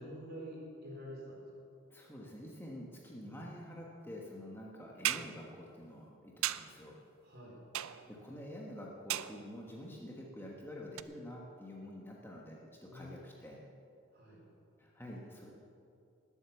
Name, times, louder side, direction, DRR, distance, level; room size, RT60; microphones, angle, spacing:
voice 1, 0.0-1.5 7.2-7.6 12.9-13.4 14.1-14.4, equal, 45° right, -3 dB, 4.2 m, -47 dB
voice 2, 1.9-7.0 7.9-13.6 14.8-15.5, left 1 dB, 10° left, -3 dB, 1.3 m, -48 dB
sound 1, 5.0-5.4 6.4-6.8 7.7-8.2 9.1-9.6 11.0-11.1, right 13 dB, 70° right, 0.4 m, -36 dB
19.5 x 8.0 x 7.0 m, 2.6 s
head